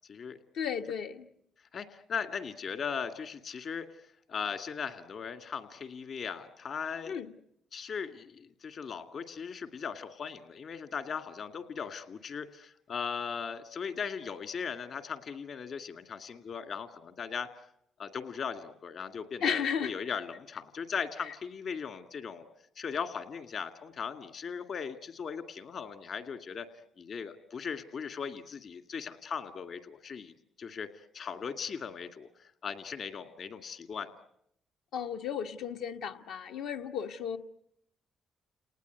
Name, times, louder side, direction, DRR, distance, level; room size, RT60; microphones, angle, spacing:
voice 1, 0.5-1.3 7.1-7.3 19.4-19.9 34.9-37.4, left 7 dB, 85° left, 5 dB, 1.3 m, -34 dB
voice 2, 1.7-3.9 4.3-7.1 7.7-17.5 18.0-22.5 22.8-26.7 27.0-30.9 31.1-32.3 32.6-34.1, left 6 dB, 60° left, 8 dB, 2.1 m, -38 dB
30.0 x 19.0 x 9.4 m, 0.76 s
cardioid pair, 90°, 0 cm